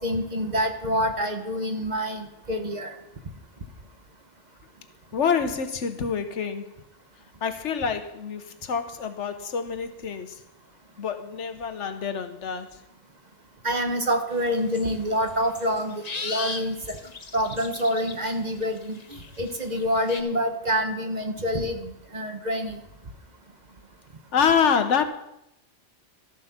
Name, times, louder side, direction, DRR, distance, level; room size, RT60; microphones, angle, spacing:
voice 1, 0.0-2.9 13.6-17.0 17.3-22.8, equal, 40° right, 1.3 m, -27 dB
voice 2, 5.1-6.7 7.4-10.4 11.0-12.7 24.3-25.0, left 6 dB, 80° left, 1.3 m, -26 dB
sound 1, 14.4-14.9 15.3-18.3 18.6-20.2, left 4 dB, 40° left, 0.9 m, -37 dB
13.5 x 7.6 x 5.9 m
omnidirectional pair, 1.2 m